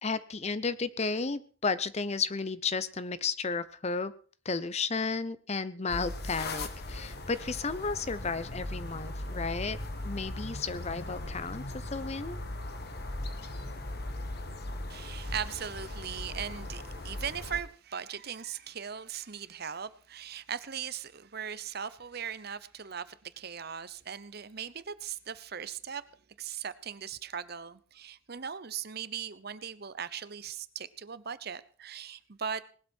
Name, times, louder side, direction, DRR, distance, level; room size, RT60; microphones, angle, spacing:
voice 1, 0.0-4.1 4.4-9.8 10.0-12.4, left 4 dB, 35° left, 0.8 m, -33 dB
sound 1, 5.9-17.6, left 1 dB, 55° left, 1.7 m, -39 dB
voice 2, 14.9-26.0 26.4-32.6, right 7 dB, 50° right, 0.9 m, -39 dB
19.5 x 12.5 x 4.5 m
head